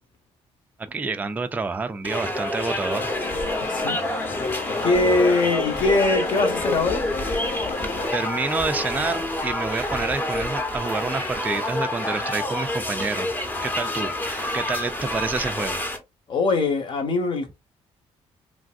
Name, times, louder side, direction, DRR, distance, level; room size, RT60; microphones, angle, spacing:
voice 1, 0.9-3.1 3.6-3.7 8.1-13.3 13.6-15.9, right 4 dB, 15° right, 0.3 m, -28 dB
sound 1, 2.0-16.0, left 1 dB, 15° left, 0.7 m, -28 dB
sound 2, 2.9-8.1, left 5 dB, 65° left, 0.5 m, -33 dB
voice 2, 3.7-4.0 4.8-7.0 16.3-17.5, left 3 dB, 45° left, 0.9 m, -22 dB
3.3 x 2.5 x 2.4 m
cardioid pair, 110°, 11 cm